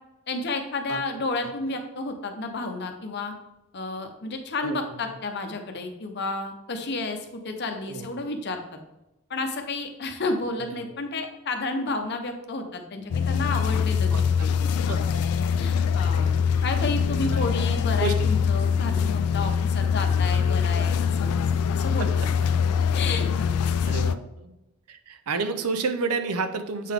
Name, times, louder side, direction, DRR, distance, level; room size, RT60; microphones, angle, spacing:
voice 1, 0.3-3.3 3.7-8.6 9.3-15.1 15.6-16.4 16.6-22.1 22.4-23.6, left 3 dB, 50° left, 5 dB, 0.7 m, -31 dB
voice 2, 0.9-1.2 4.6-5.0 7.9-8.1 10.7-10.9 14.1-14.2 14.8-15.2 17.3-17.4 18.0-18.1 23.9-24.5 24.9-26.9, right 4 dB, 85° right, 9 dB, 0.6 m, -30 dB
sound 1, 13.1-24.2, left 6 dB, 85° left, 0.3 m, -23 dB
7.4 x 3.8 x 3.5 m, 0.95 s
head